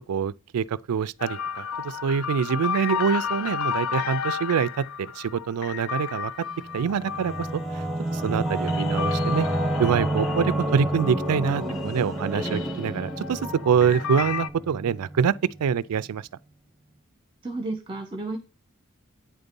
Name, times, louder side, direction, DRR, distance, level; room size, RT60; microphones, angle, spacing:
voice 1, 0.1-6.3 6.7-7.6 8.1-9.5 9.8-15.3 15.6-16.2, right 7 dB, 85° right, 0.4 m, -25 dB
sound 1, 1.2-11.4 11.7-14.5, left 7 dB, 60° left, 0.4 m, -33 dB
Singing / Musical instrument, 6.6-15.8, right 1 dB, ahead, 1.0 m, -29 dB
voice 2, 17.4-18.4, right 2 dB, 25° right, 0.7 m, -32 dB
8.7 x 4.0 x 5.2 m
head